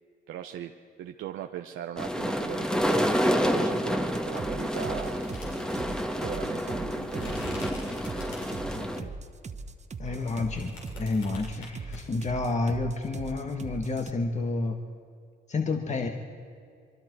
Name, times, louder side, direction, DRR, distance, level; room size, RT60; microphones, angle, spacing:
voice 1, 0.3-0.7 1.0-5.2 6.2-7.7 8.1-9.2, right 11 dB, 85° right, 4 dB, 0.9 m, -40 dB
sound 1, 2.0-9.0, equal, 5° left, 1.6 m, -29 dB
sound 2, 4.1-14.1, right 4 dB, 35° right, 1.3 m, -40 dB
sound 3, 5.0-8.9 9.4-12.0, left 2 dB, 80° left, 6.5 m, -44 dB
voice 2, 8.7-9.1 10.0-14.8 15.5-16.1, left 3 dB, 35° left, 3 dB, 1.9 m, -30 dB
25.0 x 23.5 x 4.8 m, 2.3 s
cardioid pair, 90°, 20 cm